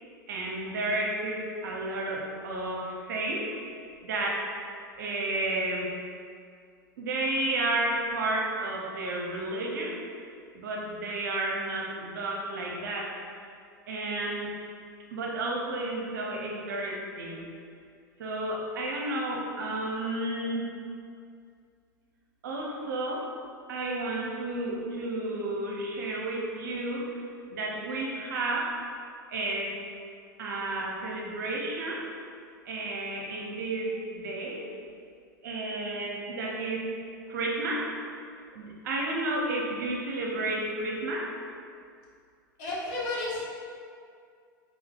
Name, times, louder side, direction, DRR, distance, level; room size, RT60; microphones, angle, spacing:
voice 1, 0.3-3.5 4.0-4.5 5.0-6.0 7.0-10.0 10.5-13.2 13.9-14.5 15.1-17.5 18.2-20.7 22.4-23.3 23.7-27.1 27.5-28.8 29.3-29.8 30.4-32.0 32.7-34.6 35.4-36.9 37.3-37.9 38.6-41.3, right 2 dB, 65° right, -2 dB, 0.7 m, -32 dB
voice 2, 42.6-43.4, left 2 dB, 50° left, -6 dB, 1.4 m, -32 dB
4.8 x 4.1 x 2.4 m, 2.3 s
figure-of-eight pair, 90°, 11 cm